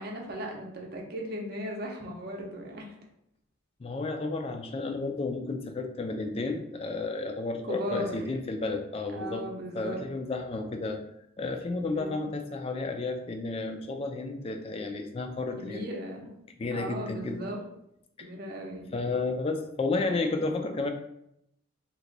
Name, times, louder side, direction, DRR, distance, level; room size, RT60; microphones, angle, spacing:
voice 1, 0.0-2.9 7.7-8.1 9.1-10.0 11.9-12.3 15.6-16.4 16.7-17.6 18.2-18.9, equal, 50° right, 1 dB, 0.7 m, -37 dB
voice 2, 3.8-9.5 9.7-11.0 11.4-15.8 16.6-17.4 18.2-18.3 18.9-20.9, left 3 dB, 30° left, 5 dB, 0.3 m, -32 dB
2.9 x 2.2 x 3.8 m, 0.78 s
head